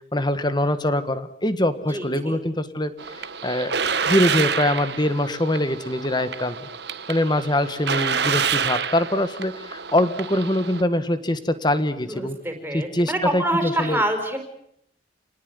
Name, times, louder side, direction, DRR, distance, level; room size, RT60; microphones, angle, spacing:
voice 1, 0.1-2.9 3.2-6.6 7.1-12.4 12.7-14.0, left 1 dB, 20° left, 11 dB, 1.8 m, -23 dB
voice 2, 1.9-2.4 12.0-14.4, right 1 dB, 10° right, 5 dB, 5.2 m, -26 dB
sound 1, 3.0-10.8, right 6 dB, 60° right, 1.3 m, -28 dB
29.0 x 19.5 x 9.8 m, 0.76 s
head